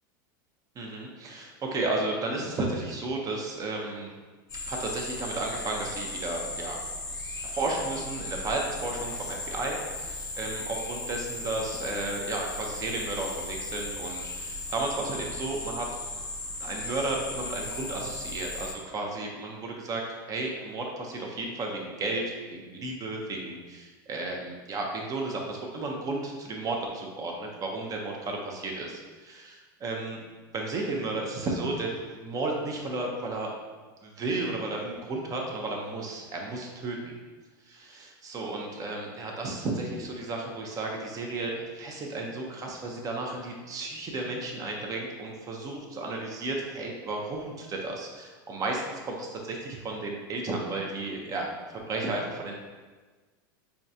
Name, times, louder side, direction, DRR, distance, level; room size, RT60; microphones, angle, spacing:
voice 1, 0.8-4.1 4.7-6.8 7.4-15.9 16.6-20.0 20.3-22.2 22.5-30.2 30.5-33.5 34.0-37.1 37.6-52.5, right 2 dB, 30° right, 0 dB, 0.7 m, -33 dB
sound 1, 4.5-18.7, left 2 dB, 30° left, 0.8 m, -37 dB
4.6 x 2.3 x 2.7 m, 1.3 s
supercardioid pair, 115°, 12 cm